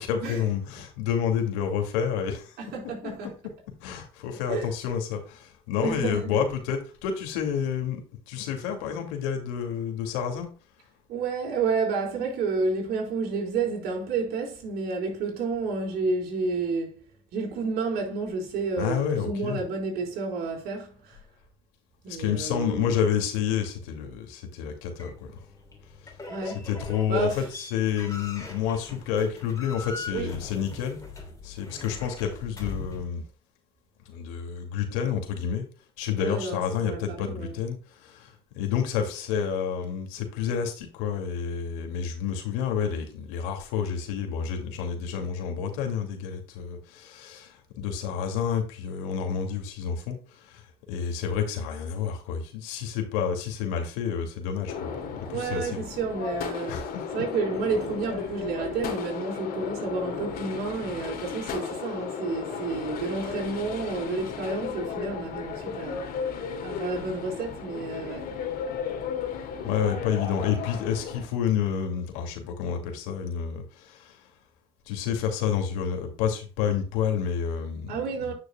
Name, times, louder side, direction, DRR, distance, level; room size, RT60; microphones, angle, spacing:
voice 1, 0.0-2.6 3.0-3.3 3.8-8.0 8.3-10.5 18.8-19.6 22.1-25.3 26.4-31.0 31.4-33.2 34.1-35.6 36.0-37.8 38.0-50.6 50.9-55.8 56.7-57.1 69.6-74.2 74.9-78.3, left 8 dB, 80° left, 2.3 m, -29 dB
voice 2, 2.6-3.3 4.5-4.7 5.8-6.4 11.1-17.0 17.3-21.2 22.0-23.0 26.3-26.7 27.1-27.4 30.1-30.3 36.2-37.6 55.3-56.8 57.1-66.0 66.6-68.3 77.9-78.3, right 4 dB, 65° right, 4.1 m, -30 dB
sound 1, 25.0-33.0, left 3 dB, 20° left, 3.0 m, -41 dB
sound 2, 54.7-71.2, left 6 dB, 60° left, 2.6 m, -34 dB
9.8 x 6.3 x 2.2 m
supercardioid pair, 80°, 17 cm